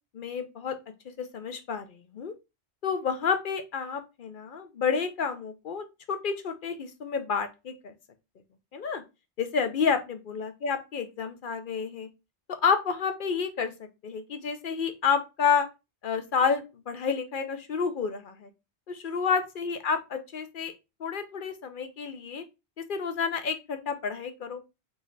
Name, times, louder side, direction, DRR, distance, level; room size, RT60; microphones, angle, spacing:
voice 1, 0.1-0.8 1.2-2.3 2.8-7.9 8.7-9.0 9.4-12.1 12.5-13.7 14.0-15.7 16.0-18.5 18.9-20.7 21.0-22.4 22.9-24.6, left 6 dB, 55° left, 9 dB, 0.7 m, -29 dB
3.6 x 3.2 x 3.9 m, 0.26 s
omnidirectional pair, 1.1 m